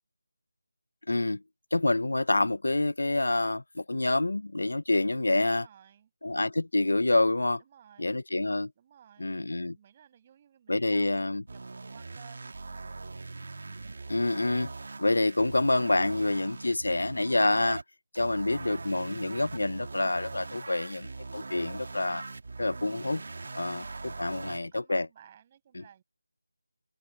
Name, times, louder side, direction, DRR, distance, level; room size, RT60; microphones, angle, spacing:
voice 1, 1.1-1.4 1.7-5.7 6.2-7.6 8.0-8.7 9.2-9.8 10.7-11.4 14.1-14.7 15.0-17.8 18.1-22.2 22.6-23.2 23.5-25.1, left 2 dB, 90° left, 0.5 m, -27 dB
voice 2, 5.3-6.1 7.6-8.2 8.8-9.3 9.7-13.0 20.5-21.1 23.4-23.9 24.3-26.0, right 9 dB, 20° right, 7.5 m, -58 dB
sound 1, 11.5-17.8 18.1-24.6, right 3 dB, 50° right, 2.6 m, -41 dB
open air
figure-of-eight pair, 175°, 0 cm